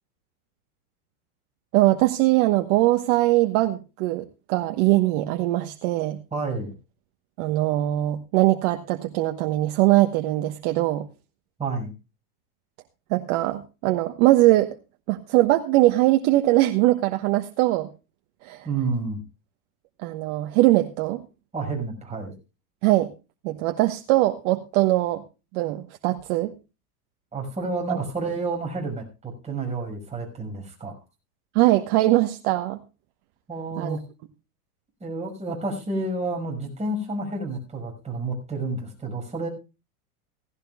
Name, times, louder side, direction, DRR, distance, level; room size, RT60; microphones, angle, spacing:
voice 1, 1.7-6.2 7.4-11.1 13.1-14.7 15.1-17.9 18.4-18.7 20.0-21.2 22.8-23.1 23.4-25.2 25.5-26.5 27.9-28.0 31.5-32.8 33.8-34.0, right 17 dB, 55° right, 6 dB, 1.3 m, -21 dB
voice 2, 6.3-6.7 11.6-11.9 18.6-19.2 21.5-22.3 27.3-31.0 33.5-34.0 35.0-39.5, right 3 dB, 15° right, 1 dB, 5.9 m, -30 dB
16.5 x 16.0 x 2.3 m, 0.29 s
supercardioid pair, 125°, 45 cm